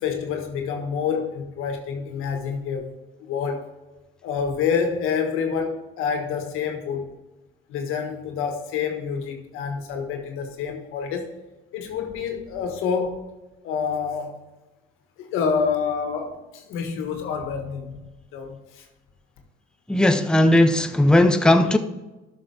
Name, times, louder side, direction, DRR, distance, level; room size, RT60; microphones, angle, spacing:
voice 1, 0.0-2.9 3.2-3.7 4.2-7.2 7.7-11.3 11.7-13.3 13.6-14.4 15.2-17.9 18.3-18.9, left 6 dB, 80° left, 1.6 m, -27 dB
voice 2, 19.9-21.8, left 1 dB, 5° left, 0.7 m, -17 dB
12.0 x 6.3 x 3.4 m
supercardioid pair, 70°, 21 cm